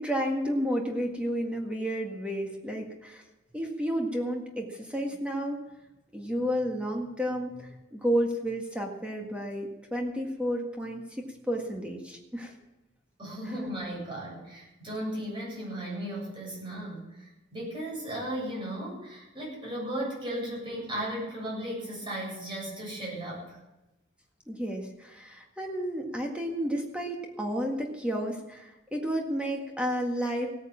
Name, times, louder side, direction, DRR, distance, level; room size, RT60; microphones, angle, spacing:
voice 1, 0.0-3.2 3.5-5.6 6.1-12.5 24.5-30.5, equal, 5° right, 0 dB, 1.8 m, -31 dB
voice 2, 13.2-23.6, right 1 dB, 25° right, -4 dB, 7.8 m, -36 dB
17.0 x 9.6 x 7.3 m, 0.98 s
head